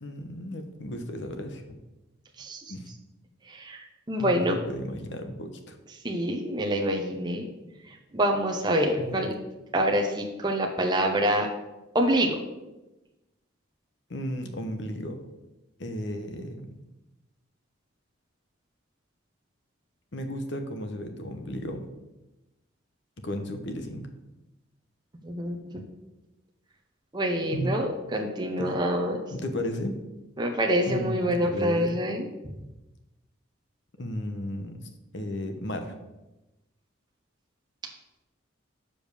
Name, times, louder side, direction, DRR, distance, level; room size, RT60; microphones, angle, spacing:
voice 1, 0.0-1.8 2.7-2.9 4.2-5.8 9.0-9.2 14.1-15.2 15.8-16.8 20.1-21.9 23.2-24.1 27.5-27.7 28.6-28.7 29.3-30.0 30.8-32.0 34.0-35.9, equal, 55° left, 6 dB, 1.0 m, -34 dB
voice 2, 2.4-2.7 3.5-4.6 6.0-7.4 8.1-9.3 9.7-11.5 11.9-12.4 25.2-25.8 27.1-29.2 30.4-32.3, equal, 20° right, 1 dB, 0.8 m, -26 dB
7.0 x 5.2 x 6.6 m, 1.0 s
head